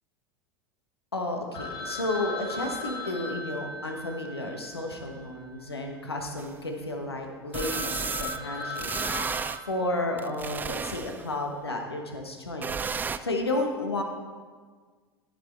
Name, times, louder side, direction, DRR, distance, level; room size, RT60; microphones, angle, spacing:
voice 1, 1.1-9.2 9.7-12.7 13.2-14.0, left 2 dB, 80° left, 3 dB, 1.2 m, -32 dB
Telephone, 1.5-5.9 6.1-6.2 6.8-6.9 7.2-7.3 7.5-10.5, left 2 dB, 30° left, 1.4 m, -38 dB
sound 1, 6.4-6.5 7.5-8.4 8.8-9.6 10.2-11.3 12.6-13.2, right 5 dB, 15° right, 0.3 m, -32 dB
12.5 x 5.8 x 4.4 m, 1.5 s
figure-of-eight pair, 85°, 13 cm